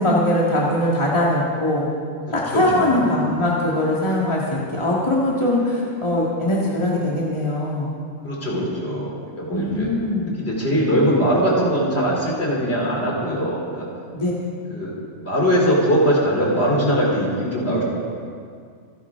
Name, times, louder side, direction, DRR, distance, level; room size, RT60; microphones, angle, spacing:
voice 1, 0.0-1.9 2.3-7.9 9.5-10.4 14.1-14.3, left 1 dB, 20° left, -5 dB, 1.9 m, -21 dB
voice 2, 2.5-3.1 8.2-9.9 10.4-13.9 14.7-14.9 15.2-17.8, equal, 50° left, -3 dB, 3.6 m, -21 dB
27.0 x 11.0 x 3.7 m, 2.2 s
omnidirectional pair, 1.4 m